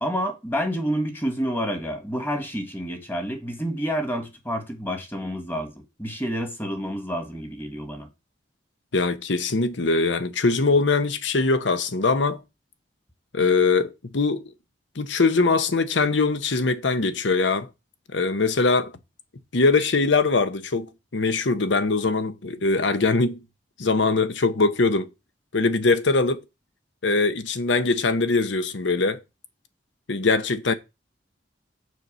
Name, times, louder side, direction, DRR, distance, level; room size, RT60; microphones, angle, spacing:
voice 1, 0.0-8.1, equal, 10° left, 1.6 m, -29 dB
voice 2, 8.9-12.4 13.3-14.4 15.0-17.7 18.1-18.9 19.5-23.4 23.8-25.1 25.5-26.4 27.0-29.2 30.1-30.7, left 3 dB, 75° left, 0.9 m, -22 dB
6.6 x 4.6 x 6.7 m
head